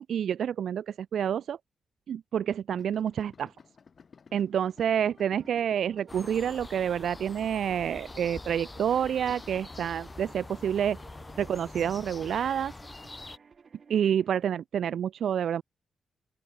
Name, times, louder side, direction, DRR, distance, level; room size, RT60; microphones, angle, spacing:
voice 1, 0.0-1.6 2.1-3.5 4.3-11.0 11.4-12.7 13.9-15.6, right 9 dB, 75° right, 0.5 m, -28 dB
Idling, 2.8-12.3, left 5 dB, 50° left, 3.1 m, -56 dB
sound 1, 4.6-14.4, right 5 dB, 50° right, 4.5 m, -56 dB
sound 2, 6.1-13.4, left 2 dB, 20° left, 5.7 m, -45 dB
open air
cardioid pair, 90°, 0 cm